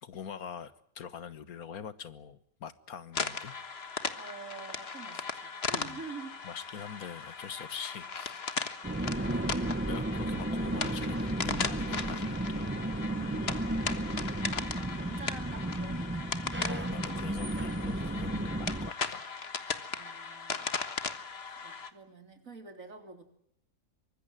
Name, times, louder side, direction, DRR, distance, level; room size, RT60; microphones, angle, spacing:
voice 1, 0.0-3.6 5.7-6.0 6.4-8.6 9.2-9.5 9.8-12.7 16.7-19.3, left 7 dB, 85° left, 15 dB, 1.8 m, -44 dB
sound 1, 3.1-21.9, left 5 dB, 45° left, 1.7 m, -38 dB
voice 2, 4.2-6.4 9.2-9.7 13.1-14.3 14.9-16.3 19.9-21.2 21.4-23.2, right 4 dB, 65° right, 7 dB, 3.9 m, -47 dB
sound 2, 8.8-18.9, right 1 dB, 10° right, 0.7 m, -33 dB
24.0 x 20.5 x 9.1 m, 0.69 s
omnidirectional pair, 1.5 m